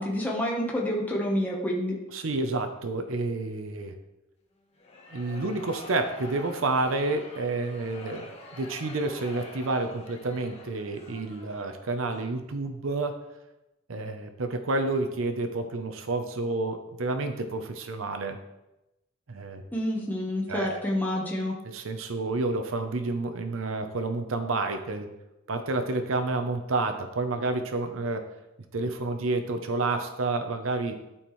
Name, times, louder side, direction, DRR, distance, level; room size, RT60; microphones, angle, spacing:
voice 1, 0.0-2.0 19.7-21.5, left 1 dB, 10° left, -3 dB, 1.1 m, -28 dB
voice 2, 2.1-3.9 5.1-13.2 13.9-18.4 19.3-19.6 20.5-20.8 21.7-25.1 25.5-28.2 28.7-31.0, right 2 dB, 90° right, 7 dB, 0.7 m, -29 dB
sound 1, 4.7-12.0, left 2 dB, 35° left, 1.2 m, -46 dB
12.5 x 4.3 x 3.1 m, 0.94 s
head